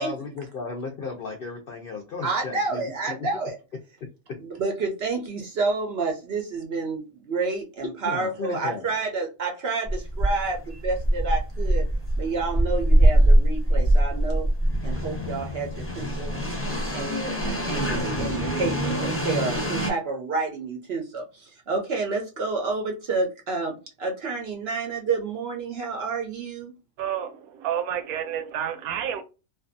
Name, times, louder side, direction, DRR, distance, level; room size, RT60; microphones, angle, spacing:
voice 1, 0.0-3.3 8.0-8.9, left 4 dB, 70° left, 0.5 m, -35 dB
voice 2, 2.2-3.6 4.4-11.9 12.2-14.5 14.8-16.4 16.9-26.7, right 3 dB, 60° right, 0.7 m, -29 dB
sound 1, 9.9-19.9, right 1 dB, 15° left, 0.6 m, -23 dB
voice 3, 27.0-29.2, right 9 dB, 80° right, 1.0 m, -30 dB
2.5 x 2.3 x 2.5 m
omnidirectional pair, 1.5 m